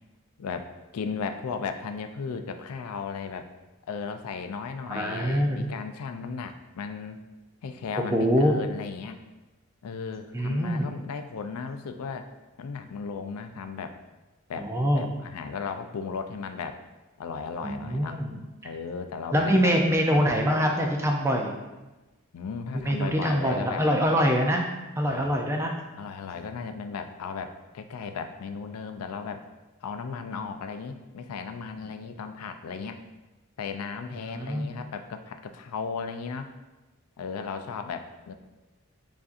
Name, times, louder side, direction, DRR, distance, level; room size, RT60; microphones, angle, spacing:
voice 1, 0.4-3.5 3.9-7.2 7.6-9.2 9.8-12.3 12.6-14.0 14.5-16.8 17.2-18.2 18.6-19.7 20.3-20.9 22.3-23.8 25.1-25.3 26.0-29.5 29.8-33.0 33.6-36.5 37.2-38.3, left 5 dB, 85° left, 7 dB, 0.4 m, -36 dB
voice 2, 4.9-5.7 8.0-8.6 10.3-10.9 14.6-15.1 17.6-18.4 19.3-21.6 22.7-24.6 25.0-25.7 34.2-34.7, equal, 10° right, 1 dB, 0.4 m, -24 dB
7.1 x 2.6 x 2.5 m, 1.1 s
head